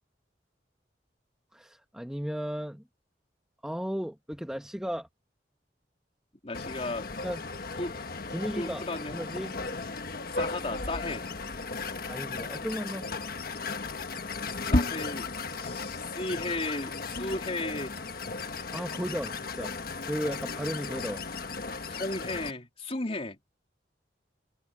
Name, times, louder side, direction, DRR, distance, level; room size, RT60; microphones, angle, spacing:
voice 1, 1.5-2.8 3.6-5.1 7.2-7.4 8.3-8.8 9.1-9.5 12.1-13.1 18.7-19.7 20.0-21.3, equal, 5° right, 1.2 m, -35 dB
voice 2, 6.4-7.1 7.8-8.0 8.5-9.1 10.2-11.3 14.4-18.0 21.8-23.4, left 2 dB, 35° left, 3.2 m, -35 dB
sound 1, 6.5-22.5, left 3 dB, 55° left, 1.4 m, -35 dB
head